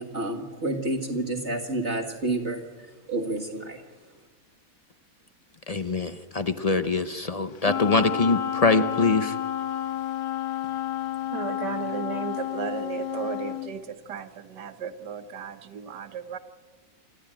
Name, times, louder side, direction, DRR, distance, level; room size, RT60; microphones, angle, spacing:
voice 1, 0.0-2.6 3.1-3.8, right 2 dB, 40° right, 4 dB, 1.9 m, -29 dB
voice 2, 5.7-9.3, left 3 dB, 50° left, 10 dB, 0.4 m, -24 dB
Wind instrument woodwind instrument, 7.6-13.7, left 11 dB, 80° left, 1.7 m, -31 dB
voice 3, 11.3-16.4, right 7 dB, 75° right, 10 dB, 1.7 m, -35 dB
27.0 x 14.0 x 8.8 m, 1.4 s
omnidirectional pair, 1.8 m